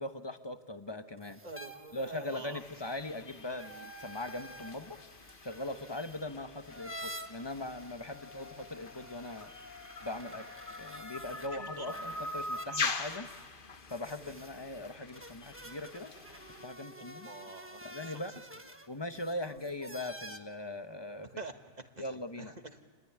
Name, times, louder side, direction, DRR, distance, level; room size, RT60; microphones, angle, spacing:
voice 1, 0.0-1.4 1.9-5.0 5.4-9.5 10.0-10.5 10.8-13.3 13.9-16.1 16.6-17.3 17.8-18.3 18.9-21.3 22.0-22.6, left 1 dB, 25° left, 9 dB, 1.0 m, -40 dB
sound 1, 1.2-11.5 11.9-20.4, equal, 10° right, 1.3 m, -50 dB
voice 2, 1.4-2.6 11.5-11.9 17.0-18.2 19.5-19.6 21.2-21.5 22.0-22.1 22.4-22.8, right 3 dB, 40° right, 6 dB, 1.7 m, -46 dB
sound 2, 2.6-16.7, left 3 dB, 50° left, 1.3 m, -43 dB
28.5 x 20.5 x 9.8 m, 1.5 s
omnidirectional pair, 1.1 m